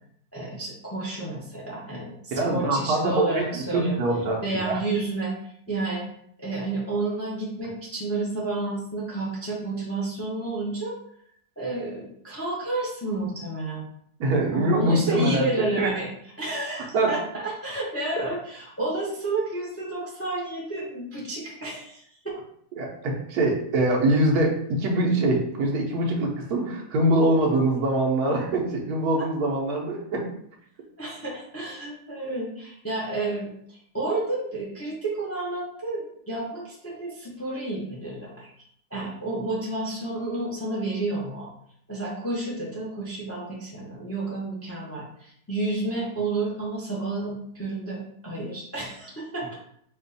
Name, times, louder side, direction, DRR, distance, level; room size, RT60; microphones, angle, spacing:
voice 1, 0.3-4.0 4.4-5.3 5.7-6.1 6.4-10.9 11.6-13.8 14.5-16.1 16.4-22.0 29.2-29.3 31.0-38.5 38.9-41.5 41.9-49.5, right 2 dB, 15° left, -4 dB, 0.6 m, -30 dB
voice 2, 2.3-4.8 14.2-15.5 15.8-16.0 16.9-17.2 18.2-18.3 22.8-30.3, right 1 dB, 70° right, -1 dB, 1.3 m, -23 dB
4.4 x 2.4 x 4.0 m, 0.68 s
omnidirectional pair, 1.7 m